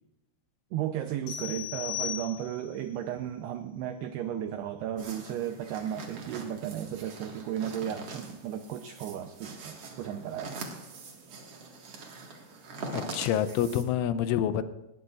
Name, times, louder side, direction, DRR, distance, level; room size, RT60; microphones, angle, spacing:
voice 1, 0.7-10.6, right 10 dB, 90° right, 7 dB, 2.3 m, -34 dB
sound 1, 1.3-2.8, left 12 dB, 65° left, 6.2 m, -36 dB
sound 2, 5.0-13.8, right 3 dB, 70° right, 1.4 m, -43 dB
voice 2, 12.9-14.6, left 10 dB, 85° left, 12 dB, 3.1 m, -27 dB
19.5 x 18.5 x 2.5 m, 0.93 s
omnidirectional pair, 5.6 m